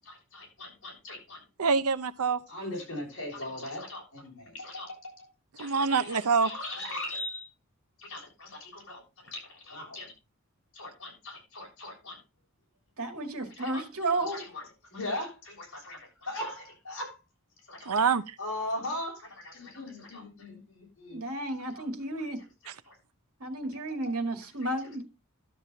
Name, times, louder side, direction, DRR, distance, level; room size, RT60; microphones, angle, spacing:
voice 1, 0.0-1.4 2.5-7.5 8.0-10.1 10.7-12.2 13.6-13.8 14.1-17.2 17.6-17.9 18.4-21.2 21.7-21.9 22.6-23.0 23.9-24.2 24.6-24.9, left 1 dB, 60° left, 6.9 m, -40 dB
voice 2, 1.6-2.4 5.6-6.5 17.9-18.3, right 5 dB, 90° right, 0.7 m, -25 dB
voice 3, 13.0-14.4 21.1-22.4 23.4-25.0, right 2 dB, 75° right, 1.9 m, -32 dB
12.5 x 7.5 x 4.0 m
head